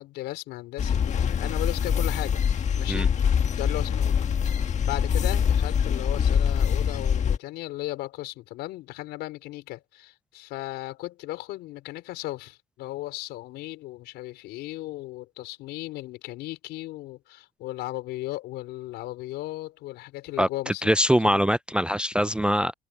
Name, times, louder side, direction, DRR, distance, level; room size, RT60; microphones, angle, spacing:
voice 1, 0.0-2.4 2.7-3.1 3.5-4.2 4.8-20.9 21.2-21.5, left 17 dB, 90° left, 4.9 m, -36 dB
sound 1, 0.8-7.4, left 7 dB, 45° left, 1.7 m, -24 dB
voice 2, 20.4-22.7, equal, 5° right, 0.3 m, -23 dB
cardioid pair, 110°, 17 cm